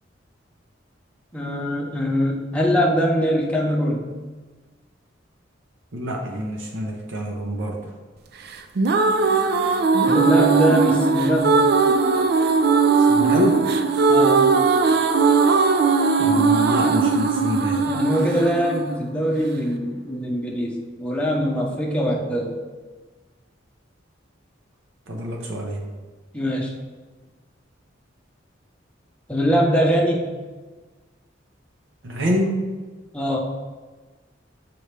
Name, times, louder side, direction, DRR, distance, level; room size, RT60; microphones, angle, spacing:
voice 1, 1.3-4.1 10.1-11.6 14.1-14.4 17.9-22.6 26.3-26.7 29.3-30.3 33.1-33.4, equal, 5° left, -2 dB, 0.9 m, -22 dB
voice 2, 5.9-7.8 13.1-13.6 16.2-17.8 25.1-25.8 32.0-32.6, equal, 90° right, 0 dB, 0.8 m, -26 dB
sound 1, 8.5-19.6, right 4 dB, 55° right, 0.4 m, -19 dB
6.4 x 4.4 x 3.3 m, 1.3 s
head